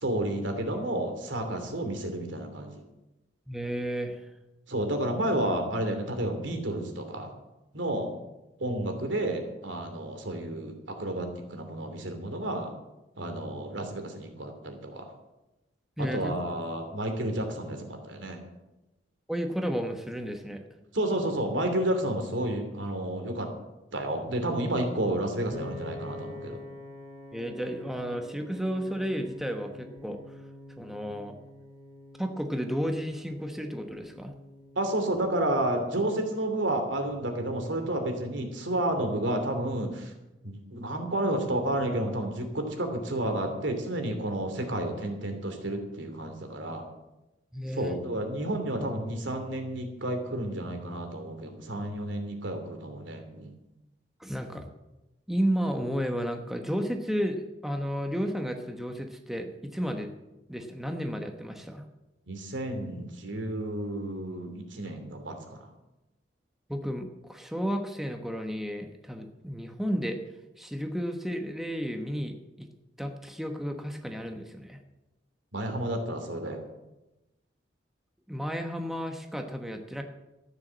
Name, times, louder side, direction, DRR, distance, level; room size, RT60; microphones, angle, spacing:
voice 1, 0.0-2.8 4.7-7.3 7.7-8.1 8.6-12.7 13.2-15.1 16.0-18.4 20.9-23.5 23.9-26.6 34.8-40.1 40.4-46.8 47.7-53.5 62.3-65.7 75.5-76.6, right 1 dB, 85° right, 5 dB, 2.9 m, -31 dB
voice 2, 3.5-4.2 16.0-16.3 19.3-20.6 27.3-30.2 30.8-31.4 32.2-34.3 47.5-48.0 54.2-54.7 55.3-60.1 60.5-61.8 66.7-70.2 70.6-72.7 73.0-74.8 78.3-80.0, equal, ahead, 4 dB, 1.1 m, -32 dB
Piano, 25.5-37.7, left 1 dB, 40° right, 3.7 m, -47 dB
13.5 x 9.7 x 7.5 m, 0.98 s
head